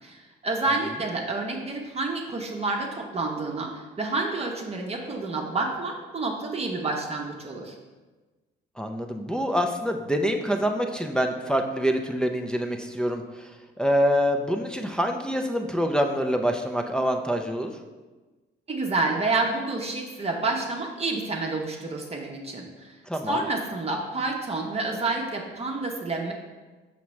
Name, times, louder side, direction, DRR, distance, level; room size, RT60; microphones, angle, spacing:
voice 1, 0.0-7.8 18.7-22.9 23.3-26.3, right 3 dB, 30° right, 1 dB, 0.8 m, -29 dB
voice 2, 8.8-13.5 13.8-17.7 23.1-23.4, equal, 5° left, 3 dB, 0.5 m, -26 dB
5.9 x 5.7 x 3.2 m, 1.3 s
cardioid pair, 90°, 20 cm